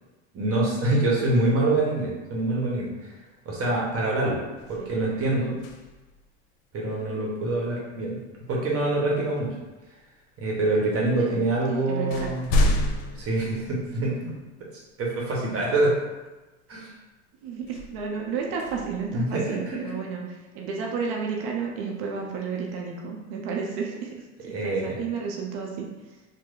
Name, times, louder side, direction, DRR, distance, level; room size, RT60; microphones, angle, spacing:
voice 1, 0.3-3.1 3.5-4.4 4.7-5.5 6.7-8.2 8.5-9.6 10.4-12.5 13.1-14.3 15.0-16.0 16.7-16.9 19.1-19.8 24.5-25.0, right 2 dB, 45° right, -3 dB, 1.0 m, -25 dB
sound 1, 4.4-6.2 8.4-8.6 9.4-10.1 11.0-11.1 11.5-14.3 14.9-15.0 17.6-19.8, left 1 dB, 75° left, 0.5 m, -30 dB
voice 2, 11.2-12.3 17.4-26.2, right 5 dB, 80° right, 0 dB, 0.6 m, -32 dB
3.0 x 2.0 x 3.8 m, 1.2 s
supercardioid pair, 90°, 33 cm